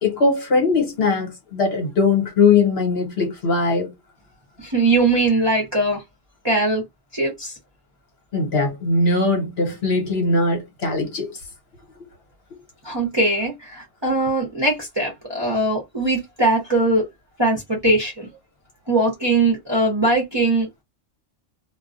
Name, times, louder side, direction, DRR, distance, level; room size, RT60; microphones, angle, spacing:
voice 1, 0.0-3.9 8.3-11.4, left 3 dB, 55° left, 1.2 m, -20 dB
voice 2, 4.6-6.0 6.4-6.8 7.1-7.5 12.8-17.1 17.4-18.3 18.9-20.7, right 2 dB, 25° right, 0.7 m, -20 dB
2.3 x 2.2 x 2.5 m
omnidirectional pair, 1.3 m